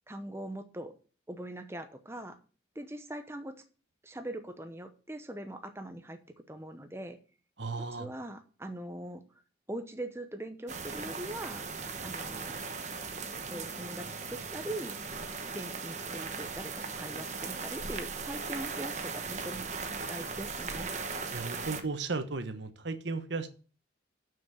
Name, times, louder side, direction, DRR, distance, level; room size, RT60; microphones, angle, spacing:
voice 1, 0.1-0.9 1.3-2.4 2.7-3.5 4.0-6.2 6.5-7.2 8.0-9.2 9.7-11.6 12.0-12.6 13.5-15.0 15.5-19.8 20.1-20.9, right 1 dB, 15° right, 7 dB, 0.8 m, -41 dB
voice 2, 7.6-8.1 21.3-23.5, right 3 dB, 65° right, 10 dB, 1.0 m, -35 dB
sound 1, 10.7-21.8, right 4 dB, 40° right, 1.0 m, -38 dB
7.0 x 6.3 x 7.8 m, 0.38 s
head